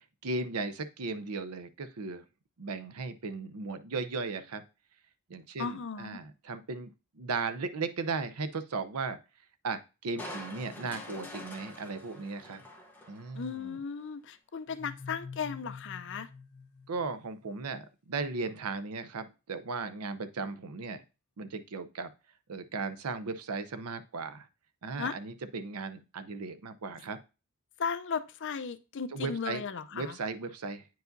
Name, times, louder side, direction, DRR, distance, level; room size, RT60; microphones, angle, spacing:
voice 1, 0.0-2.2 2.6-4.6 5.3-9.2 9.6-12.6 13.1-13.8 16.9-21.0 21.4-22.1 22.5-24.5 24.8-27.2 29.1-29.6 29.9-30.9, right 4 dB, 85° right, 11 dB, 0.7 m, -36 dB
voice 2, 5.6-6.2 13.3-16.3 25.0-25.2 27.8-30.2, left 6 dB, 55° left, 12 dB, 0.5 m, -36 dB
Crushing, 10.2-13.6 14.0-14.1, left 1 dB, 10° left, 0.9 m, -45 dB
sound 1, 14.7-17.5, left 5 dB, 90° left, 1.0 m, -46 dB
9.2 x 4.8 x 2.6 m, 0.30 s
head